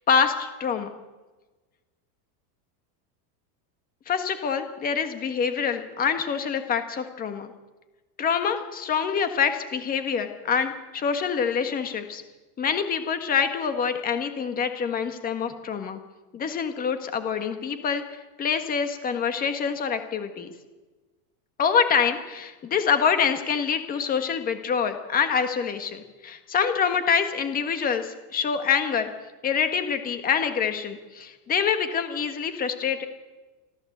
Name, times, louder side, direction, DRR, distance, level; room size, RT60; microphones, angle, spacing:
voice 1, 0.1-0.9 4.1-7.5 8.2-12.2 12.6-16.0 16.3-18.0 18.4-20.5 21.6-29.1 29.4-33.1, left 6 dB, 20° left, 8 dB, 1.6 m, -26 dB
26.0 x 15.0 x 8.0 m, 1.2 s
supercardioid pair, 180°, 46 cm